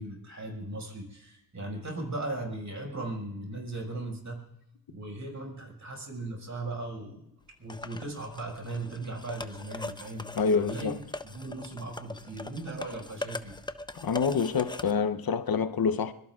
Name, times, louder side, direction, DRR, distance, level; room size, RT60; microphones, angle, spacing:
voice 1, 0.0-4.4 4.9-7.3 7.6-10.3 10.6-10.9 11.2-13.6, right 2 dB, 50° right, 5.6 m, -38 dB
sound 1, 7.7-14.9, left 2 dB, 10° left, 0.7 m, -41 dB
voice 2, 10.3-11.0 13.9-16.1, left 5 dB, 75° left, 0.8 m, -27 dB
25.0 x 23.0 x 2.4 m
cardioid pair, 65°, 36 cm